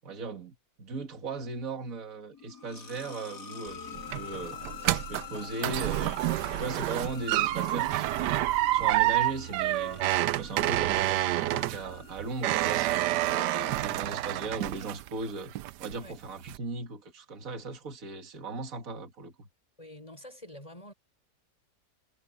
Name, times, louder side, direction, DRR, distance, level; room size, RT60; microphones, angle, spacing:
voice 1, 0.0-4.6 4.8-6.2 6.5-8.4 8.7-10.0 10.3-15.5 15.8-19.5, right 3 dB, 55° right, 2.5 m, -38 dB
sound 1, 2.3-13.1, left 7 dB, 70° left, 3.0 m, -46 dB
sound 2, 3.7-15.2 15.6-16.1 16.5-16.6, right 16 dB, 85° right, 1.2 m, -28 dB
voice 2, 19.8-20.9, left 1 dB, 20° left, 7.0 m, -47 dB
omnidirectional pair, 1.8 m